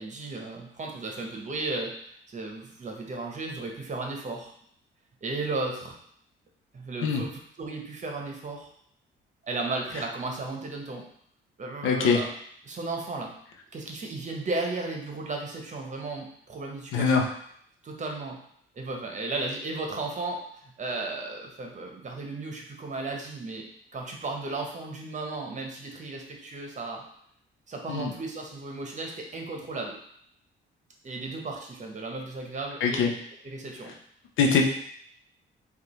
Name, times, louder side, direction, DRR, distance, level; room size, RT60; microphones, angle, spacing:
voice 1, 0.0-1.9 2.3-4.5 5.2-6.0 6.7-8.7 9.4-11.0 11.6-12.3 12.6-13.3 13.7-17.3 17.8-18.4 18.7-23.7 23.9-27.0 27.7-29.9 31.0-33.0 33.4-33.9, right 3 dB, 40° right, 1 dB, 0.9 m, -35 dB
voice 2, 11.8-12.2 16.9-17.3 27.9-28.1 32.8-33.1 34.4-34.6, left 5 dB, 85° left, 3 dB, 0.7 m, -22 dB
5.0 x 2.5 x 3.1 m, 0.66 s
cardioid pair, 90°, 20 cm